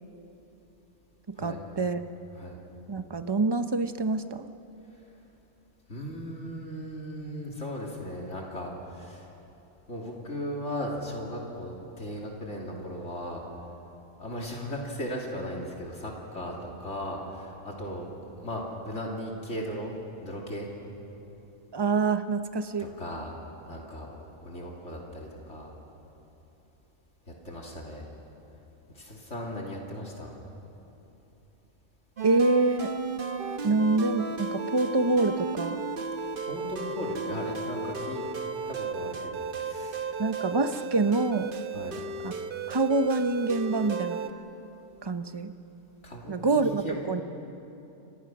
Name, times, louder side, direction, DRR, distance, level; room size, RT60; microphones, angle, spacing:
voice 1, 1.3-2.0 2.9-4.5 21.7-22.9 32.2-32.9 33.6-35.8 40.2-41.5 42.2-42.3 42.7-44.2 45.0-45.5 46.3-47.2, right 3 dB, 25° right, 9 dB, 0.8 m, -26 dB
voice 2, 5.9-9.3 9.9-13.4 14.2-19.9 20.2-20.7 22.8-23.4 23.6-25.7 27.3-28.1 28.9-30.3 36.2-38.2 38.7-40.1 41.7-42.0 46.0-47.0, equal, 70° left, -2 dB, 3.2 m, -37 dB
sound 1, 32.2-44.3, right 4 dB, 50° right, 1.2 m, -34 dB
29.5 x 25.5 x 6.2 m, 3.0 s
omnidirectional pair, 1.3 m